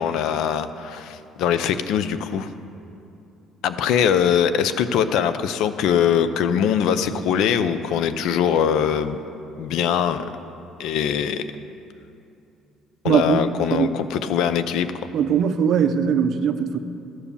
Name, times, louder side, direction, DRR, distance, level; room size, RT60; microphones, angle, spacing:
voice 1, 0.0-2.5 3.6-9.2 9.6-10.3 10.8-11.5 13.0-14.9, left 8 dB, 75° left, 12 dB, 0.5 m, -22 dB
voice 2, 13.0-13.9 15.1-16.8, right 7 dB, 55° right, 9 dB, 0.6 m, -20 dB
13.0 x 7.2 x 7.0 m, 2.7 s
cardioid pair, 135°, 0 cm